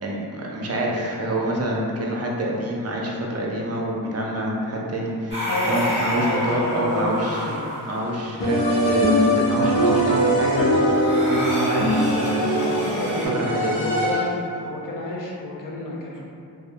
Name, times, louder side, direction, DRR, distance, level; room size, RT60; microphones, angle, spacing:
voice 1, 0.0-7.4 7.9-10.9 11.3-12.6 12.9-13.0 13.2-13.7, right 1 dB, 35° right, -3 dB, 0.5 m, -26 dB
sound 1, 5.3-13.3, equal, 25° left, 1.2 m, -30 dB
voice 2, 5.5-5.8 6.1-7.7 12.6-13.4 13.7-16.2, left 1 dB, 50° left, -3 dB, 0.6 m, -30 dB
sound 2, 8.4-14.5, equal, 85° left, 0.9 m, -21 dB
2.6 x 2.4 x 2.2 m, 2.5 s
cardioid pair, 65°, 43 cm